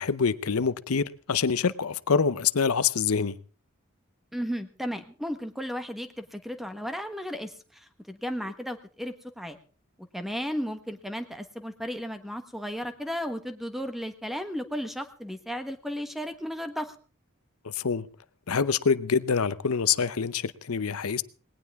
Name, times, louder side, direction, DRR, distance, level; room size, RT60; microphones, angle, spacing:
voice 1, 0.0-3.3 17.6-18.1 18.5-21.2, left 6 dB, 80° left, 0.7 m, -26 dB
voice 2, 4.3-9.6 10.1-16.9, equal, ahead, 1.3 m, -34 dB
19.5 x 18.0 x 3.6 m
head